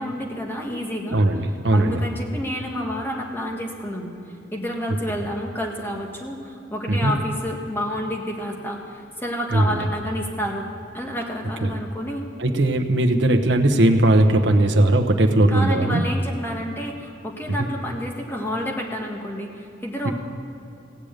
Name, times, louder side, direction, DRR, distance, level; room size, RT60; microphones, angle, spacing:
voice 1, 0.0-1.2 1.7-4.1 4.5-10.7 10.9-12.2 15.5-20.1, equal, 10° left, 0 dB, 1.4 m, -29 dB
voice 2, 1.1-2.0 6.9-7.1 9.5-9.8 11.6-11.7 12.4-16.0 20.0-20.1, right 1 dB, 75° right, 4 dB, 1.0 m, -18 dB
16.5 x 6.6 x 8.9 m, 2.7 s
head